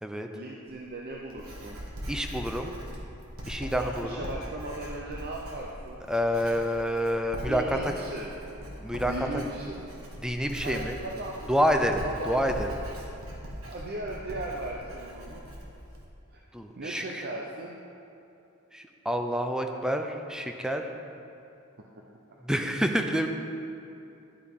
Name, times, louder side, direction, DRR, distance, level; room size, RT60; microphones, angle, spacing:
voice 1, 0.3-1.8 3.8-6.0 7.5-8.3 9.1-9.8 10.6-11.5 12.0-12.4 13.6-15.4 16.3-16.4 16.7-17.8, right 1 dB, 50° right, -2 dB, 0.7 m, -37 dB
Writing, 0.7-16.0, equal, 85° right, 1.6 m, -41 dB
voice 2, 2.1-2.8 3.5-4.2 6.1-7.8 8.8-9.4 10.2-11.0 11.5-12.7 16.5-17.2 18.7-20.9 22.4-23.3, equal, 5° right, 4 dB, 0.5 m, -28 dB
11.5 x 8.7 x 3.7 m, 2.7 s
head